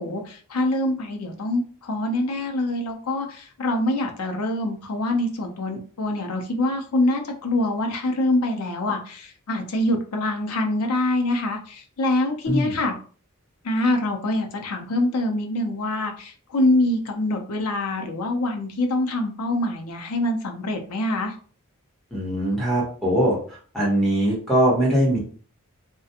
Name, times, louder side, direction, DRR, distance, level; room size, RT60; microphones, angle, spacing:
voice 1, 0.0-12.9 13.6-21.3, left 1 dB, 85° left, 4 dB, 0.6 m, -25 dB
voice 2, 22.1-23.4 23.7-25.2, equal, ahead, -6 dB, 1.1 m, -21 dB
2.4 x 2.2 x 2.7 m, 0.42 s
head